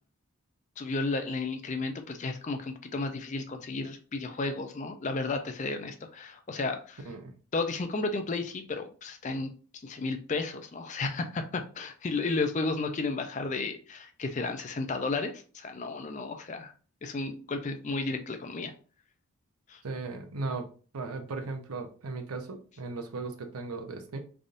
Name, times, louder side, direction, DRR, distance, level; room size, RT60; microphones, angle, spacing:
voice 1, 0.8-7.0 7.5-9.5 9.8-16.7 17.0-18.7 19.7-19.8, left 3 dB, 35° left, 7 dB, 0.4 m, -33 dB
voice 2, 19.8-20.7 20.9-24.2, right 3 dB, 90° right, 5 dB, 0.7 m, -37 dB
3.9 x 3.4 x 2.5 m, 0.39 s
head